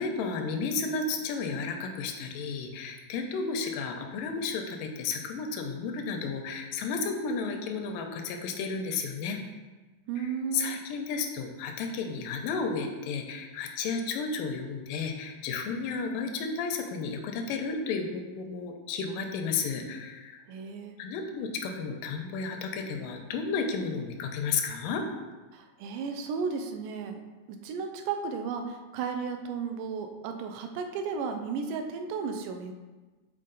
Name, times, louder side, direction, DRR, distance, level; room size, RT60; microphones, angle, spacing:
voice 1, 0.0-9.4 10.2-20.4 21.0-25.0, left 4 dB, 90° left, 4 dB, 2.3 m, -33 dB
voice 2, 10.1-10.8 20.5-21.0 25.5-27.2 27.5-32.7, right 5 dB, 80° right, 5 dB, 2.2 m, -34 dB
7.5 x 4.2 x 3.8 m, 1.2 s
omnidirectional pair, 3.9 m